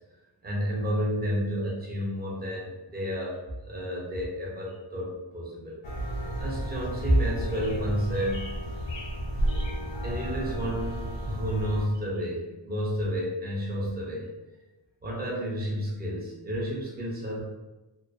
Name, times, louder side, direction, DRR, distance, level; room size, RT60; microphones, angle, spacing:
voice 1, 0.4-3.4 3.6-5.8 6.4-8.7 10.0-14.3 15.0-17.4, equal, 20° right, -4 dB, 0.6 m, -30 dB
sound 1, 5.8-11.9, equal, 75° left, 0.6 m, -32 dB
2.3 x 2.2 x 2.4 m, 1.1 s
wide cardioid pair, 150°, 45 cm